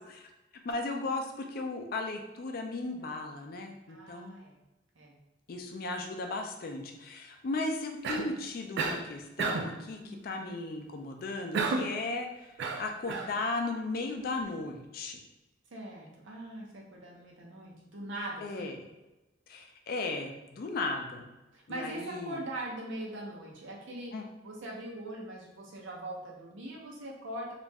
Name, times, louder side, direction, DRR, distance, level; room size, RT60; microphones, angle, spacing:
voice 1, 0.6-4.3 5.5-15.2 18.4-18.7 19.5-21.3 21.7-22.4 24.1-24.2, left 3 dB, 50° left, 4 dB, 0.4 m, -36 dB
voice 2, 3.9-4.6 4.9-5.2 10.0-10.6 15.7-18.8 21.5-24.1 24.4-27.6, right 1 dB, 85° right, -2 dB, 0.7 m, -41 dB
Cough, 8.0-8.4 8.8-9.1 9.4-9.8 11.5-12.0 12.6-13.3, right 4 dB, 60° right, 0.3 m, -31 dB
2.4 x 2.1 x 3.3 m, 1.0 s
head